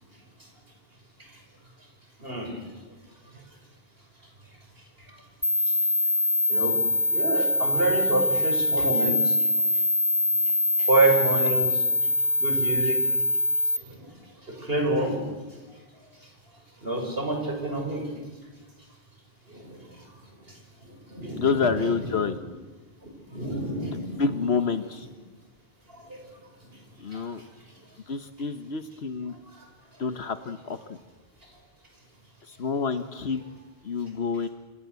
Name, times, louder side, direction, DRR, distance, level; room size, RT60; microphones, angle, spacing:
voice 1, 2.2-2.5 6.5-6.7 7.1-9.4 10.8-11.8 12.4-13.0 13.9-14.0 14.6-15.2 16.8-18.1 19.5-19.8 21.1-22.4 23.3-24.3 27.1-27.2, right 2 dB, 65° right, 2 dB, 6.4 m, -27 dB
sound 1, 5.4-13.8, left 2 dB, 25° left, 2.3 m, -24 dB
voice 2, 21.3-22.4 24.2-25.1 27.0-27.4 28.1-29.3 30.0-30.8 32.5-33.4 33.8-34.5, left 5 dB, 75° left, 10 dB, 1.4 m, -28 dB
26.5 x 26.0 x 8.2 m, 1.3 s
omnidirectional pair, 1.1 m